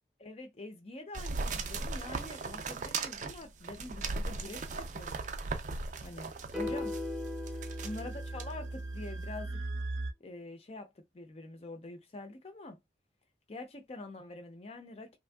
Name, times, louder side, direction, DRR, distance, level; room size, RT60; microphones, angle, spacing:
voice 1, 0.2-5.2 6.0-6.9 7.5-9.6 10.2-12.8 13.5-15.2, left 2 dB, 35° left, 0.5 m, -45 dB
sound 1, 1.1-7.0 7.5-8.0 8.4-8.5, right 4 dB, 40° right, 0.4 m, -37 dB
sound 2, 5.8-10.1, right 2 dB, 85° right, 0.6 m, -40 dB
sound 3, 6.5-8.8, left 2 dB, 5° right, 0.7 m, -39 dB
3.2 x 2.5 x 2.2 m
head